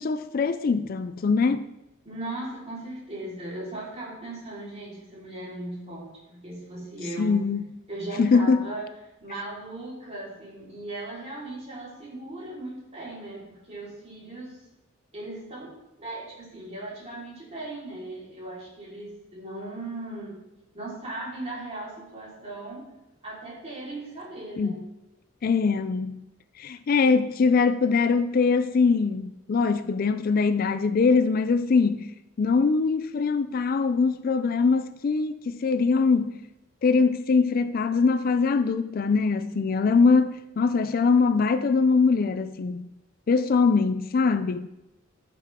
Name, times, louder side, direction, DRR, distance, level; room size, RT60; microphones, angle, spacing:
voice 1, 0.0-1.7 7.2-7.6 8.2-8.7 24.6-24.7 25.4-26.2 26.6-32.1 32.4-36.3 36.8-42.9 43.3-44.7, left 4 dB, 45° left, 0.4 m, -22 dB
voice 2, 2.0-7.4 7.9-8.9 9.2-14.6 15.1-20.3 20.7-22.9 23.2-24.9, right 2 dB, 30° right, 4.1 m, -38 dB
14.0 x 6.8 x 3.6 m
head